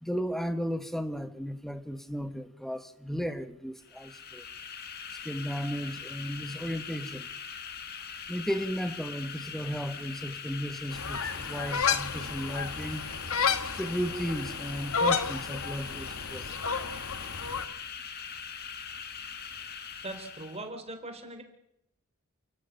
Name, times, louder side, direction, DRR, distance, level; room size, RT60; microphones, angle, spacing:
voice 1, 0.0-4.4 5.2-7.3 8.3-13.0 13.7-16.4, equal, ahead, 1.5 m, -34 dB
sound 1, 3.8-20.7, left 6 dB, 45° left, 1.8 m, -42 dB
sound 2, 10.9-17.6, left 5 dB, 75° left, 1.6 m, -32 dB
voice 2, 20.0-21.4, right 2 dB, 30° right, 4.0 m, -40 dB
29.5 x 13.0 x 9.3 m
head